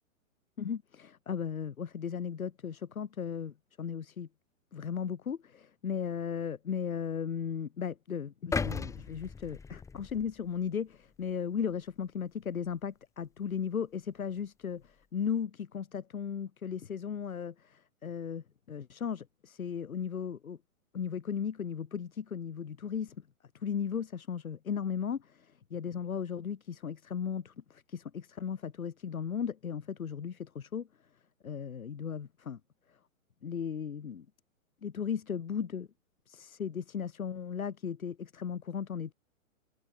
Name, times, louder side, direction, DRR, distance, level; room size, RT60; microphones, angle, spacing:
voice 1, 0.6-4.3 4.7-20.6 20.9-23.2 23.5-30.9 31.4-32.6 33.4-34.3 34.8-35.9 36.3-39.1, left 7 dB, 80° left, 1.7 m, -36 dB
sound 1, 8.5-10.7 11.2-11.3, left 5 dB, 5° left, 1.2 m, -36 dB
hypercardioid pair, 120°, 41 cm